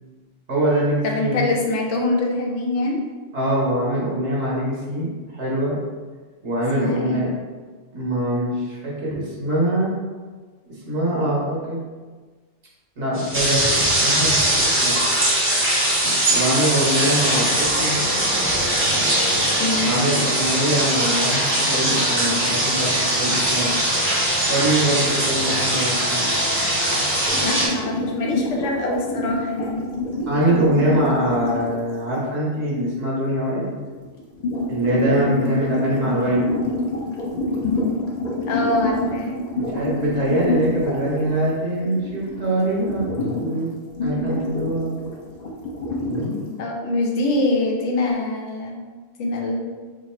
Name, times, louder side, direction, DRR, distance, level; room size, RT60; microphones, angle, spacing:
voice 1, 0.5-1.5 3.3-5.8 6.4-7.3 7.9-9.9 10.9-11.9 13.0-14.9 16.3-18.0 19.9-23.8 24.5-26.2 30.3-33.8 34.7-36.5 39.5-43.1 43.4-43.7 44.0-45.0, right 1 dB, 65° right, -5 dB, 1.1 m, -23 dB
voice 2, 1.0-3.0 6.8-7.2 19.6-20.0 27.4-29.9 38.5-39.3 46.6-48.8 49.2-49.7, left 2 dB, 70° left, 0 dB, 0.9 m, -24 dB
sound 1, 13.1-27.7, right 1 dB, 15° right, 0.6 m, -21 dB
sound 2, 27.3-31.7 34.1-41.6 41.9-43.5 44.0-46.4, left 2 dB, 45° left, 0.6 m, -26 dB
2.9 x 2.3 x 4.2 m, 1.4 s
omnidirectional pair, 1.3 m